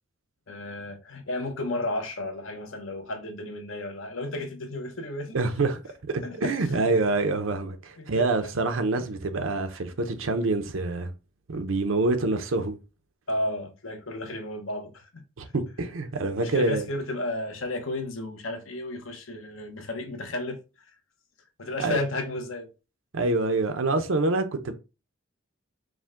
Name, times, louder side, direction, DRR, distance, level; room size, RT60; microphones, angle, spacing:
voice 1, 0.5-5.4 6.2-6.9 8.0-8.5 13.3-15.2 16.4-20.9 21.6-22.7, left 1 dB, 80° left, 0.9 m, -33 dB
voice 2, 5.3-5.8 6.1-11.1 11.5-12.8 15.4-16.9 21.8-22.0 23.1-24.7, right 3 dB, 80° right, 0.7 m, -26 dB
4.9 x 2.1 x 3.7 m
head